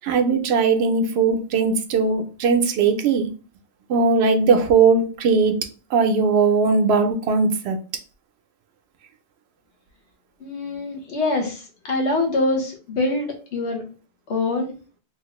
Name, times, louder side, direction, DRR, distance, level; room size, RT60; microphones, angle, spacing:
voice 1, 0.0-3.3 3.9-5.6 5.9-7.8, right 4 dB, 75° right, 6 dB, 0.8 m, -19 dB
voice 2, 10.4-13.8 14.3-14.7, left 2 dB, 85° left, 1 dB, 1.1 m, -24 dB
3.1 x 2.4 x 2.9 m, 0.35 s
omnidirectional pair, 1.1 m